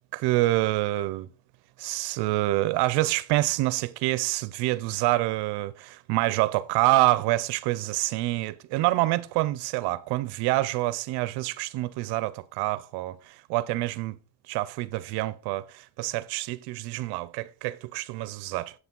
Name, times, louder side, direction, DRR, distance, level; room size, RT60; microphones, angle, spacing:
voice 1, 0.1-1.3 1.8-14.1 14.5-18.7, right 17 dB, 55° right, 0.5 m, -27 dB
8.3 x 7.9 x 3.7 m
cardioid pair, 160°, 49 cm